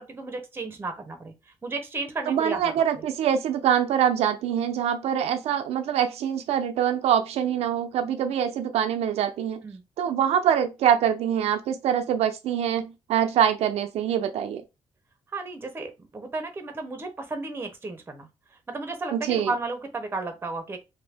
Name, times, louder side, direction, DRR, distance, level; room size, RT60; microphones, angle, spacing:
voice 1, 0.0-1.3 1.6-3.0 9.6-9.8 15.3-18.3 18.7-20.8, right 3 dB, 20° right, 0.7 m, -33 dB
voice 2, 2.3-9.6 10.0-14.6 19.1-19.5, right 9 dB, 85° right, 0.4 m, -24 dB
2.7 x 2.6 x 3.4 m
cardioid pair, 145°, 10 cm